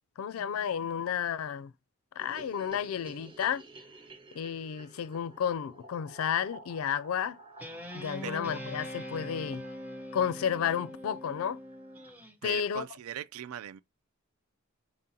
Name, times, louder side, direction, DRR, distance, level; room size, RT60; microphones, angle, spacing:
voice 1, 0.2-1.7 2.2-3.6 4.4-7.4 7.9-9.6 10.1-11.6 12.4-12.8, left 8 dB, 75° left, 0.4 m, -32 dB
sound 1, 2.2-10.4 10.7-10.8 11.0-11.1 11.4-11.5 11.7-12.3, right 2 dB, 25° right, 1.1 m, -52 dB
Guitar, 7.6-12.3, equal, 10° right, 0.9 m, -42 dB
voice 2, 12.4-13.8, right 10 dB, 85° right, 0.4 m, -40 dB
4.9 x 3.7 x 2.7 m
head